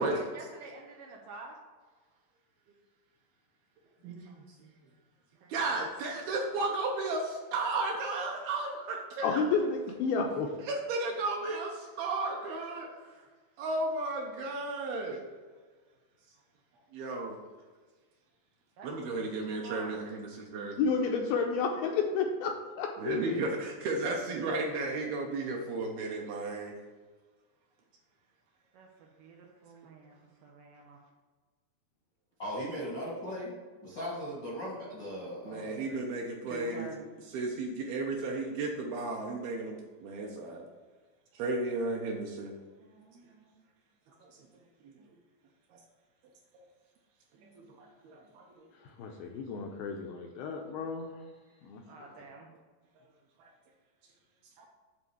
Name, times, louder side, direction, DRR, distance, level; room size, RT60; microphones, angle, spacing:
voice 1, 0.0-1.6 5.4-5.6 18.8-20.0 28.7-31.0 42.8-43.6 45.0-45.1 47.4-47.7 48.2-48.4 51.9-52.5, right 3 dB, 90° right, 0 dB, 1.8 m, -50 dB
voice 2, 5.5-9.4 10.6-12.9 13.6-15.2 16.9-17.4 18.8-20.9 23.0-26.7 35.5-36.9 37.3-40.6 41.3-42.5 44.2-44.3 44.8-44.9 47.6-48.6 53.4-53.5 54.6-54.7, right 3 dB, 75° right, 0 dB, 2.5 m, -34 dB
voice 3, 9.2-10.5 20.8-23.4 49.0-51.2 51.6-51.8, left 5 dB, 80° left, 3 dB, 2.2 m, -31 dB
voice 4, 32.4-33.5 33.8-36.0 36.5-37.0, equal, 60° left, -6 dB, 1.1 m, -38 dB
9.0 x 3.7 x 6.9 m, 1.4 s
omnidirectional pair, 4.9 m